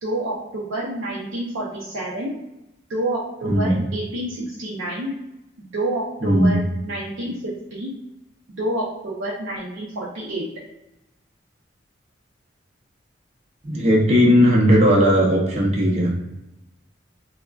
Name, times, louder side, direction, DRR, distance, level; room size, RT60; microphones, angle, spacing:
voice 1, 0.0-2.3 2.9-5.1 5.6-7.9 8.5-10.5, right 1 dB, 80° right, -5 dB, 0.5 m, -28 dB
voice 2, 3.4-3.7 6.2-6.5 13.6-16.1, equal, 35° right, -2 dB, 0.6 m, -17 dB
3.4 x 2.1 x 2.3 m, 0.93 s
head